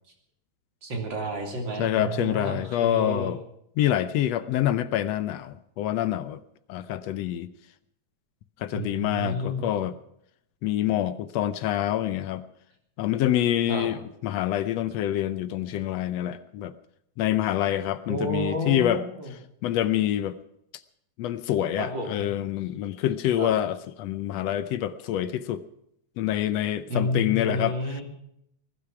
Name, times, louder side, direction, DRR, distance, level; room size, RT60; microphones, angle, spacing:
voice 1, 0.8-3.3 8.7-9.8 13.7-13.9 18.1-19.3 21.8-22.3 23.4-23.5 26.9-28.0, equal, 40° right, 3.7 m, -31 dB
voice 2, 1.8-3.4 3.8-6.4 6.7-7.5 8.6-9.9 10.6-12.4 13.0-16.7 17.2-19.0 19.6-20.4 21.2-25.6 26.2-27.8, left 12 dB, 75° left, 1.7 m, -26 dB
20.0 x 12.0 x 5.8 m
omnidirectional pair, 3.3 m